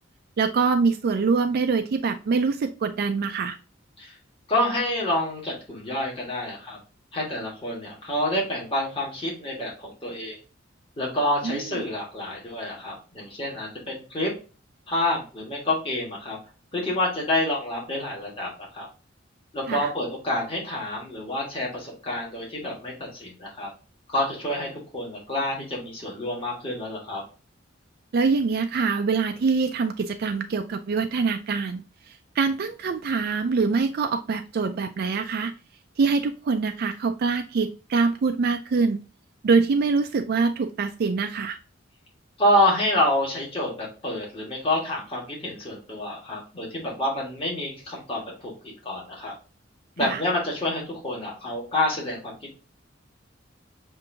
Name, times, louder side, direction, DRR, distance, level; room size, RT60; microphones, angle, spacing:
voice 1, 0.4-3.6 11.4-11.6 19.7-19.9 28.1-35.5 36.0-39.0 39.4-41.6 50.0-50.2, right 4 dB, 55° right, 7 dB, 0.4 m, -24 dB
voice 2, 4.5-6.8 7.1-10.4 11.0-14.3 14.9-16.4 16.7-18.9 19.5-23.7 24.1-27.2 42.4-48.5 48.8-49.3 50.0-52.5, left 1 dB, 30° left, -3 dB, 1.5 m, -28 dB
6.7 x 2.6 x 2.6 m, 0.34 s
head